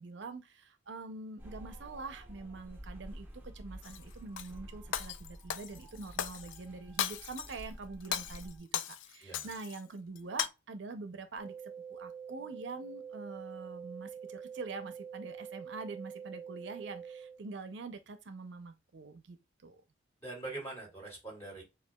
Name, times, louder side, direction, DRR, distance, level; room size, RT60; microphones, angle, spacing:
voice 1, 0.0-19.4 19.6-19.8, right 3 dB, 65° right, 0.5 m, -45 dB
sound 1, 1.4-8.6, equal, 10° right, 0.7 m, -50 dB
Shatter, 3.8-4.5 4.9-6.6 7.0-7.6 8.0-9.8 10.2-10.5, left 9 dB, 75° left, 0.4 m, -37 dB
sound 2, 11.4-17.4, right 7 dB, 40° left, 1.3 m, -46 dB
voice 2, 20.2-21.6, right 2 dB, 15° left, 2.5 m, -43 dB
7.2 x 2.4 x 2.2 m
head